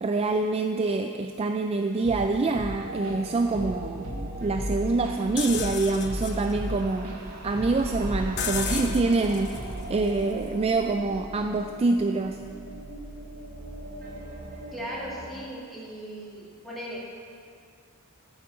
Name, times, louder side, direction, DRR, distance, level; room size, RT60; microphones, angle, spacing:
voice 1, 0.0-7.1 7.4-12.4, right 3 dB, 25° right, 6 dB, 0.3 m, -26 dB
Drum kit / Drum, 2.0-2.3 2.5-3.3 3.5-3.8 4.0-7.2 7.5-8.8 9.0-9.2 9.5-9.9, right 1 dB, 70° right, 1.4 m, -37 dB
sound 1, 2.8-15.4, right 1 dB, 40° right, 1.4 m, -39 dB
sound 2, 5.4-11.2, left 5 dB, 50° left, 0.8 m, -36 dB
voice 2, 14.7-17.0, equal, ahead, -6 dB, 2.4 m, -37 dB
12.5 x 5.3 x 7.6 m, 2.3 s
head